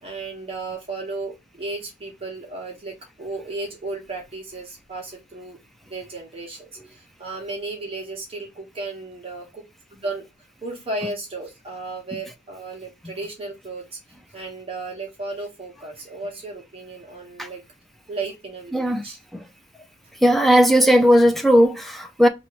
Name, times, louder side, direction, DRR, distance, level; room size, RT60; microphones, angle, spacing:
voice 1, 0.0-5.6 5.9-9.6 9.9-10.2 10.6-14.0 14.3-17.6 18.1-19.2, right 3 dB, 30° right, 1.2 m, -34 dB
voice 2, 18.7-19.0 19.3-19.4 20.2-22.3, equal, ahead, 0.4 m, -16 dB
3.0 x 2.8 x 4.5 m
head